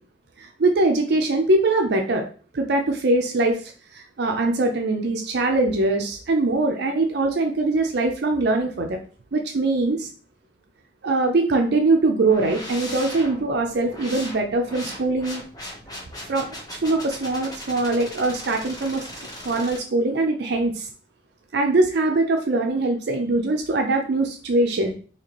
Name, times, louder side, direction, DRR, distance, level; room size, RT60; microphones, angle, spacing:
voice 1, 0.4-2.2 2.5-9.0 9.3-10.1 11.0-15.4 16.3-16.5 16.8-19.0 19.4-20.9 21.5-24.9, right 2 dB, 60° right, 3 dB, 0.5 m, -22 dB
sound 1, 12.3-19.8, left 1 dB, 20° left, 0.9 m, -38 dB
4.2 x 2.9 x 2.9 m, 0.40 s
head